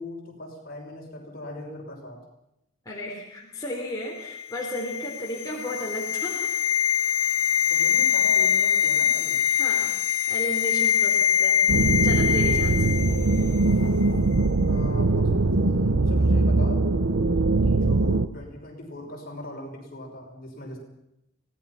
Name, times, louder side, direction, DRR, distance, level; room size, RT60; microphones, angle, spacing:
voice 1, 0.0-2.2 7.7-9.4 12.5-12.6 14.6-16.9 17.6-20.8, left 1 dB, 45° left, 0 dB, 5.9 m, -40 dB
voice 2, 2.9-6.6 7.7-7.8 9.6-9.9 10.3-12.9, equal, 15° left, -3 dB, 3.8 m, -34 dB
sound 1, 4.2-13.5 13.7-13.9, left 9 dB, 75° left, 0.7 m, -23 dB
sound 2, 11.7-18.3, right 2 dB, 75° right, 0.9 m, -21 dB
24.5 x 18.0 x 5.9 m, 0.85 s
head